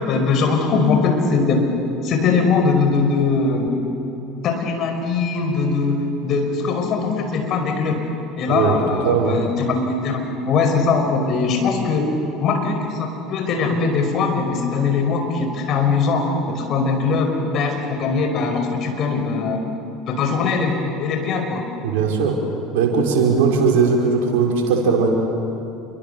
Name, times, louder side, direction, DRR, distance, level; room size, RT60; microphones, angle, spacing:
voice 1, 0.0-1.7 2.0-3.7 4.4-8.0 8.4-12.1 12.4-19.6 20.1-21.6, left 4 dB, 50° left, 4 dB, 5.5 m, -21 dB
voice 2, 9.0-9.4 21.8-22.3 22.7-25.1, right 5 dB, 65° right, 0 dB, 4.8 m, -18 dB
28.0 x 24.0 x 7.0 m, 2.9 s
hypercardioid pair, 70°, 0 cm